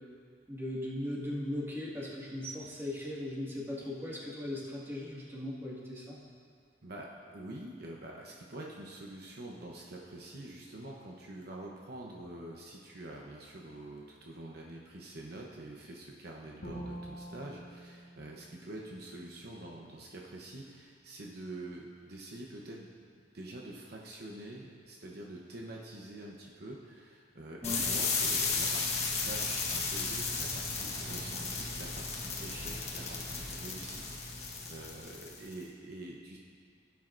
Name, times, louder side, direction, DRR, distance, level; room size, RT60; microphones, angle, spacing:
voice 1, 0.5-6.2 27.6-27.9, left 1 dB, 15° right, -6 dB, 1.9 m, -38 dB
voice 2, 6.8-22.9 23.3-34.3 34.7-36.4, right 1 dB, 60° right, -2 dB, 0.9 m, -46 dB
Bowed string instrument, 16.6-19.7, right 1 dB, 80° left, 1.6 m, -47 dB
sound 1, 27.6-35.5, left 4 dB, 40° left, 1.5 m, -34 dB
16.5 x 9.3 x 2.6 m, 2.1 s
head